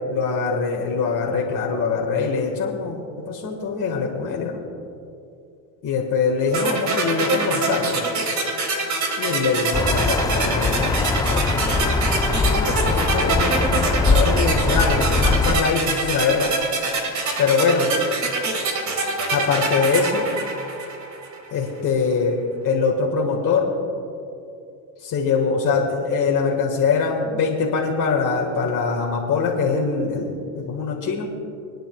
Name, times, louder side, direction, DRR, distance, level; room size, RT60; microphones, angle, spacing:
voice 1, 0.1-4.6 5.8-8.0 9.2-11.8 12.5-16.5 17.4-17.9 19.3-20.3 21.5-23.7 25.0-31.3, left 5 dB, 45° left, -1 dB, 1.8 m, -23 dB
sound 1, 6.5-21.4, right 3 dB, 40° right, 2.0 m, -25 dB
sound 2, 9.7-15.6, left 3 dB, 10° left, 0.4 m, -21 dB
28.0 x 10.0 x 2.4 m, 2.6 s
supercardioid pair, 110°, 45 cm